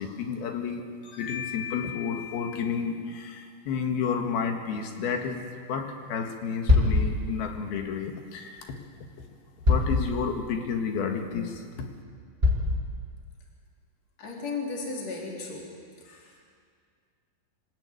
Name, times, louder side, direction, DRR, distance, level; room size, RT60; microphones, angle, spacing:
voice 1, 0.0-8.8 9.7-11.9, left 6 dB, 75° left, 4 dB, 3.6 m, -31 dB
sound 1, 6.7-7.0 8.6-8.7 9.6-10.0 10.6-10.7 11.3-11.4 12.4-12.7, left 3 dB, 15° right, 3.9 m, -21 dB
voice 2, 14.2-15.7 16.0-16.4, left 4 dB, 40° left, -3 dB, 4.7 m, -35 dB
26.5 x 15.0 x 9.1 m, 2.1 s
omnidirectional pair, 4.5 m